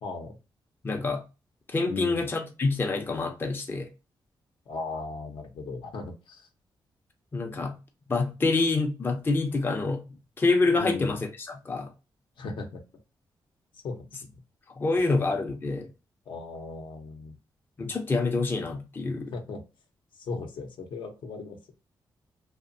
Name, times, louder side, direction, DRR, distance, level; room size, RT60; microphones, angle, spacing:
voice 1, 0.0-0.4 1.9-2.3 4.7-6.5 10.8-11.2 12.4-12.8 13.7-14.3 15.1-15.2 16.3-17.4 19.3-19.6 20.1-21.7, left 3 dB, 75° left, 0.6 m, -37 dB
voice 2, 0.8-1.2 1.7-3.9 7.3-7.8 8.1-10.0 10.4-11.9 14.8-15.9 17.8-19.3, left 3 dB, 25° left, 0.4 m, -26 dB
2.8 x 2.1 x 2.5 m
wide cardioid pair, 120°, 8 cm